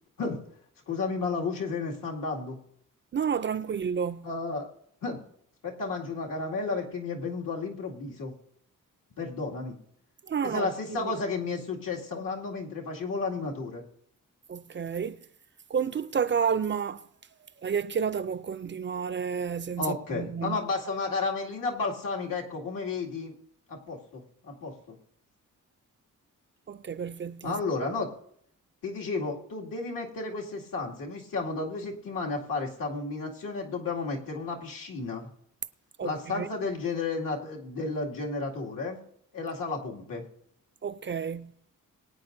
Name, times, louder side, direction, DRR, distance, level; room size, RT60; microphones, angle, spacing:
voice 1, 0.9-2.6 4.2-4.7 5.0-5.2 5.6-8.3 9.2-9.8 10.4-13.8 19.8-23.3 23.7-25.0 27.4-28.1 28.8-35.3 36.0-39.0 39.3-40.2, left 3 dB, 80° left, 2.3 m, -32 dB
voice 2, 3.1-4.3 10.3-11.1 14.5-15.2 15.7-17.1 17.6-20.6 26.7-27.6 36.0-36.5 40.8-41.5, right 7 dB, 35° right, 0.4 m, -30 dB
22.5 x 9.0 x 2.6 m
wide cardioid pair, 120°, 33 cm